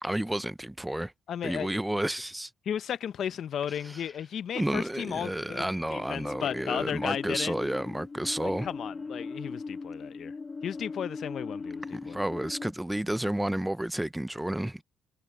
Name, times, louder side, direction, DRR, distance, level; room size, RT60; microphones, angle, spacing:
voice 1, 0.0-1.1 1.4-2.5 3.8-4.0 4.5-8.7 11.9-14.8, right 1 dB, 5° right, 0.6 m, -31 dB
voice 2, 1.3-1.8 2.7-7.6 8.4-10.3 10.6-12.2, left 9 dB, 65° left, 0.7 m, -35 dB
sound 1, 5.9-12.7, left 4 dB, 30° left, 1.8 m, -39 dB
cardioid pair, 90°, 0 cm